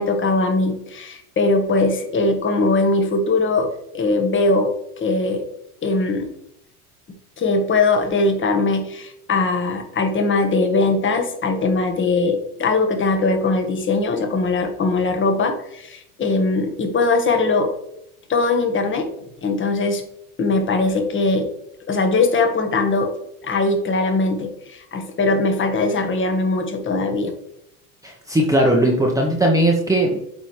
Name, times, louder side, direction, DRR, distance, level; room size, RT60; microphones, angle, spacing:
voice 1, 0.0-3.7 3.9-4.7 5.0-5.4 5.8-6.3 7.4-17.7 18.3-19.1 19.4-20.0 20.4-21.5 21.9-23.1 23.4-27.3, left 3 dB, 25° left, 5 dB, 1.3 m, -20 dB
voice 2, 28.0-30.2, right 1 dB, 5° right, -1 dB, 0.9 m, -18 dB
8.6 x 4.1 x 3.2 m, 0.79 s
hypercardioid pair, 90°, 45 cm